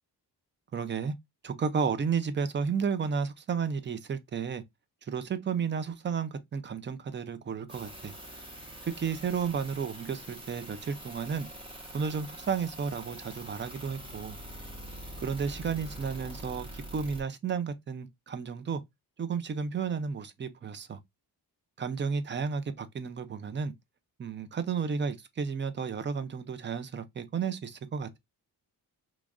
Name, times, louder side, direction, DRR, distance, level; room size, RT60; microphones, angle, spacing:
voice 1, 0.7-1.1 1.4-4.6 5.1-8.1 9.0-11.5 11.9-14.4 15.2-18.8 19.2-21.0 21.8-23.7 24.2-28.2, right 6 dB, 30° right, 0.4 m, -32 dB
sound 1, 7.7-17.2, right 1 dB, 15° right, 0.8 m, -44 dB
3.1 x 2.4 x 3.5 m
wide cardioid pair, 160°, 40 cm